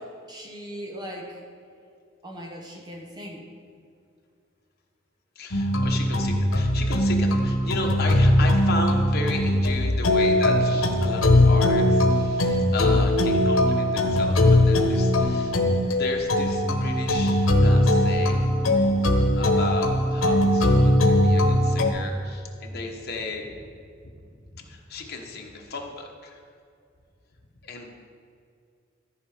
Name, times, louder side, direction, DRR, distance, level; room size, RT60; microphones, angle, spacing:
voice 1, 0.0-1.4 2.2-3.4, equal, 20° right, 0 dB, 1.1 m, -39 dB
voice 2, 5.3-18.5 19.3-23.6 24.5-26.4 27.6-27.9, left 2 dB, 50° left, 1 dB, 1.2 m, -34 dB
sound 1, 5.5-21.9, left 1 dB, 90° left, 1.0 m, -20 dB
13.5 x 5.1 x 5.0 m, 2.4 s
head